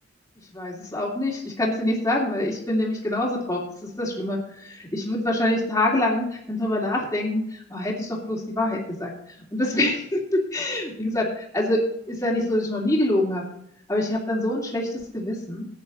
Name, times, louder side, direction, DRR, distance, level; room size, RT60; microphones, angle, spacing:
voice 1, 0.5-9.1 9.5-11.8 12.1-13.4 13.9-15.7, left 1 dB, 15° left, -4 dB, 2.9 m, -25 dB
14.5 x 9.5 x 4.1 m, 0.71 s
head